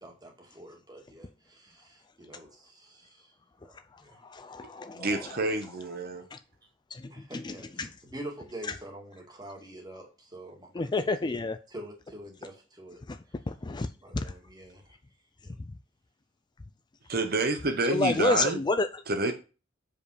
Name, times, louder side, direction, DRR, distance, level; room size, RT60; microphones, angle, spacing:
voice 1, 0.0-3.3 3.6-4.2 7.1-13.0 14.0-15.0 15.4-15.6, right 1 dB, 20° right, 2.2 m, -46 dB
voice 2, 4.2-5.1 6.3-6.4 6.9-7.9 10.7-11.6 13.1-13.2 13.5-13.9 14.1-14.3 17.9-18.9, left 3 dB, 20° left, 0.4 m, -29 dB
voice 3, 4.9-6.3 17.1-18.6 19.1-19.3, right 2 dB, 50° right, 0.9 m, -28 dB
7.2 x 5.2 x 4.9 m
head